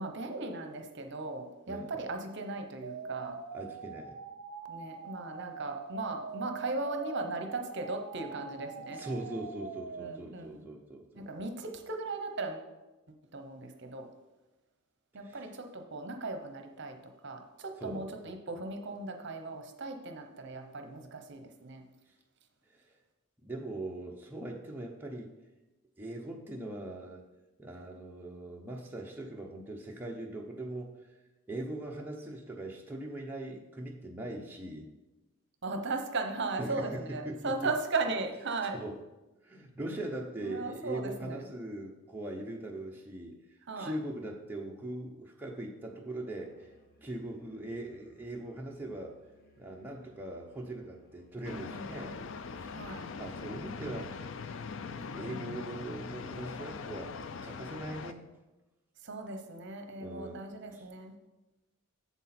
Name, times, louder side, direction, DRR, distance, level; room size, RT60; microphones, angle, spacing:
voice 1, 0.0-3.4 4.7-9.0 10.0-10.7 11.1-12.7 13.1-14.1 15.1-21.8 35.6-38.8 40.4-41.6 43.7-44.0 51.5-52.3 52.6-53.1 59.0-61.1, right 3 dB, 55° right, 5 dB, 0.8 m, -37 dB
sound 1, 2.8-10.2, right 5 dB, 85° right, 0.5 m, -44 dB
voice 2, 3.5-4.2 9.0-11.2 15.2-15.5 17.8-18.1 22.7-22.9 23.4-25.3 26.0-27.2 27.6-31.1 31.5-34.9 36.6-37.5 38.7-39.0 39.4-46.7 47.0-49.1 49.6-52.2 52.6-52.7 53.2-54.2 55.1-57.2 57.4-58.2 60.0-60.4 60.7-60.8, right 1 dB, 10° right, -1 dB, 0.7 m, -41 dB
Musical instrument, 46.4-52.8, left 1 dB, 45° left, 1.0 m, -64 dB
sound 2, 51.4-58.1, left 5 dB, 60° left, 0.4 m, -42 dB
8.0 x 7.2 x 4.3 m, 1.1 s
head